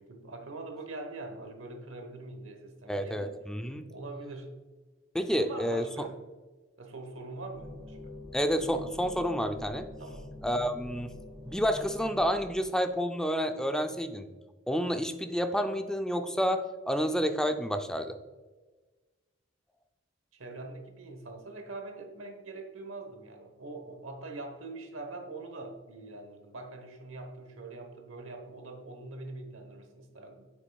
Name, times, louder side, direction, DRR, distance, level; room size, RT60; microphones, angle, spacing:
voice 1, 0.0-3.4 3.9-4.5 5.3-6.2 6.8-8.1 10.0-10.4 20.3-30.5, right 2 dB, 70° right, 5 dB, 1.0 m, -43 dB
voice 2, 2.9-3.8 5.1-5.8 8.3-9.9 10.4-11.1 11.4-14.3 14.7-18.2, equal, 5° left, 7 dB, 0.3 m, -29 dB
sound 1, 7.5-12.5, left 2 dB, 20° right, 1.6 m, -45 dB
7.9 x 6.0 x 2.3 m, 1.3 s
head